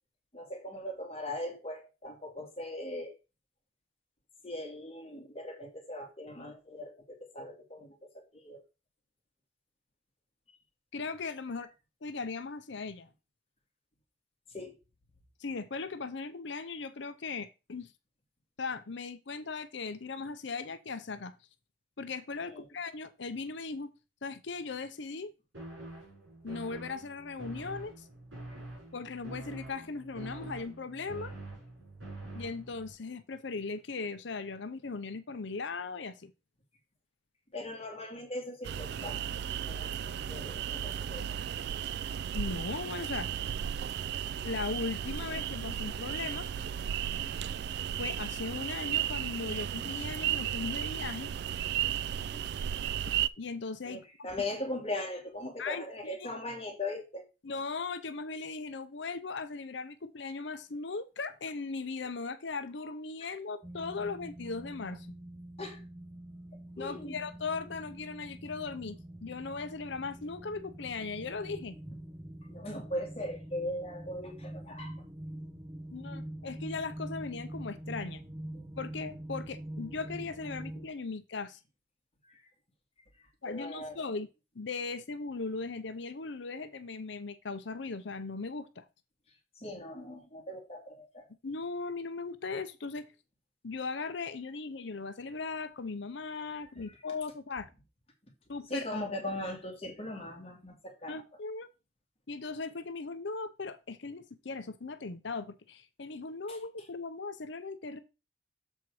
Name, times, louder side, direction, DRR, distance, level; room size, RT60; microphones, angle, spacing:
voice 1, 0.3-3.2 4.4-8.6 14.5-14.8 22.5-22.7 28.5-28.6 37.5-39.2 39.6-41.4 47.1-47.3 52.3-52.4 53.8-57.2 63.2-63.3 65.6-65.8 66.8-67.2 72.4-74.9 82.2-82.5 83.2-84.0 89.6-91.3 96.8-97.0 98.7-101.2 106.5-106.9, left 1 dB, 30° left, 2.2 m, -40 dB
voice 2, 10.9-11.7 12.0-13.1 15.4-17.9 18.6-21.3 22.0-23.9 24.2-25.3 26.4-28.1 28.9-31.3 32.3-36.3 42.3-43.3 44.4-46.5 48.0-51.3 53.4-54.0 55.6-56.3 57.4-65.1 66.8-71.8 75.9-78.2 78.8-81.6 83.4-84.3 84.6-88.8 91.4-93.1 93.6-97.7 98.5-98.9 101.1-101.7 102.3-108.0, left 4 dB, 60° left, 0.7 m, -38 dB
sound 1, 25.5-32.9, right 2 dB, 75° right, 4.4 m, -45 dB
sound 2, 38.6-53.3, right 9 dB, 55° right, 0.3 m, -34 dB
sound 3, 63.6-80.9, right 1 dB, 20° right, 0.8 m, -45 dB
7.2 x 4.4 x 4.8 m
head